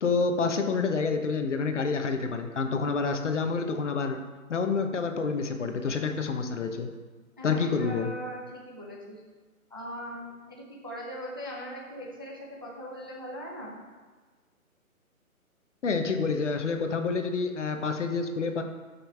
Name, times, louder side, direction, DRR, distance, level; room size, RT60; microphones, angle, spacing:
voice 1, 0.0-4.2 4.5-6.9 7.4-8.1 15.8-18.6, left 4 dB, 55° left, 6 dB, 1.1 m, -28 dB
voice 2, 7.4-9.2 9.7-13.8, equal, 15° right, -3 dB, 0.5 m, -40 dB
13.0 x 5.6 x 3.5 m, 1.4 s
hypercardioid pair, 155°, 43 cm